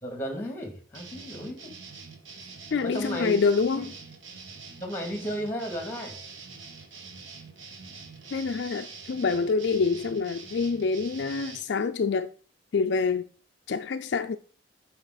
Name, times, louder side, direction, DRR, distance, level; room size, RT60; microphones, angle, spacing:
voice 1, 0.0-1.7 2.8-3.5 3.8-3.9 4.8-6.2, equal, 10° left, 2.3 m, -34 dB
sound 1, 0.9-11.6, right 4 dB, 80° right, 1.5 m, -45 dB
voice 2, 2.7-3.9 8.3-12.3 12.7-13.3 13.7-14.4, left 4 dB, 60° left, 0.4 m, -26 dB
8.9 x 5.4 x 3.9 m
head